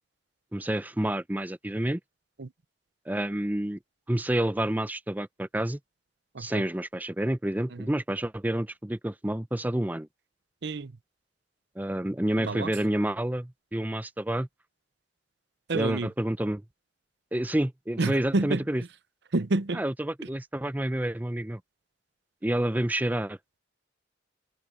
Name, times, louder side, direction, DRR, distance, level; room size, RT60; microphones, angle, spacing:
voice 1, 0.5-2.0 3.1-3.8 4.1-5.8 6.4-10.1 11.8-14.5 15.7-16.6 17.3-18.8 19.7-21.6 22.4-23.4, right 1 dB, 10° right, 0.6 m, -29 dB
voice 2, 12.4-12.7 15.7-16.1 18.0-18.6 19.3-19.8, right 2 dB, 65° right, 0.7 m, -28 dB
head